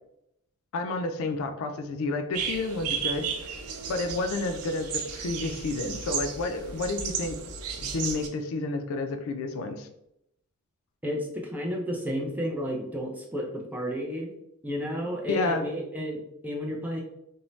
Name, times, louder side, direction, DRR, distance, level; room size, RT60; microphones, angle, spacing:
voice 1, 0.7-3.6 3.9-7.4 7.8-9.9 15.3-15.7, left 3 dB, 65° left, 7 dB, 0.3 m, -30 dB
sound 1, 2.3-8.3, right 6 dB, 85° right, 0.4 m, -34 dB
voice 2, 11.0-14.3 14.6-17.0, equal, 10° right, 0 dB, 0.4 m, -32 dB
2.6 x 2.0 x 3.1 m, 0.79 s
head